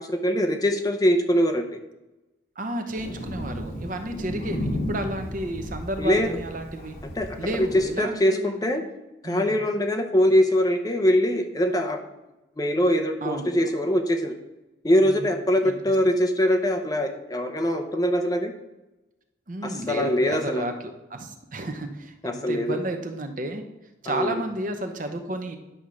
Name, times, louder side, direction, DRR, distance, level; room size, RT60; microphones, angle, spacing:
voice 1, 0.0-1.8 6.0-6.3 7.2-8.8 9.2-12.0 12.6-14.4 14.8-18.5 19.6-20.7 22.2-22.8 24.1-24.4, equal, 20° left, 5 dB, 0.6 m, -23 dB
voice 2, 2.6-6.9 7.4-8.5 9.2-9.6 13.2-13.5 15.0-15.3 15.6-15.7 19.5-20.7 21.1-23.6 24.0-25.6, right 1 dB, 45° right, 5 dB, 0.7 m, -32 dB
Thunder, 2.9-8.0, left 1 dB, 55° left, 2.7 m, -34 dB
10.0 x 3.5 x 6.2 m, 1.0 s
head